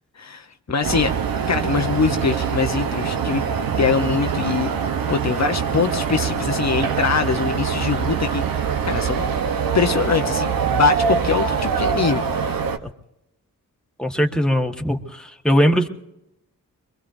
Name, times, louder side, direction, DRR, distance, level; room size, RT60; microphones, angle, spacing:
voice 1, 0.2-1.1 1.5-3.4 3.8-9.3 9.7-12.6, left 6 dB, 55° left, 6 dB, 0.8 m, -23 dB
sound 1, 0.8-12.8, right 6 dB, 85° right, 0.9 m, -23 dB
voice 2, 14.0-15.9, equal, ahead, 3 dB, 1.4 m, -20 dB
23.5 x 23.0 x 2.6 m, 0.88 s
cardioid pair, 65°, 34 cm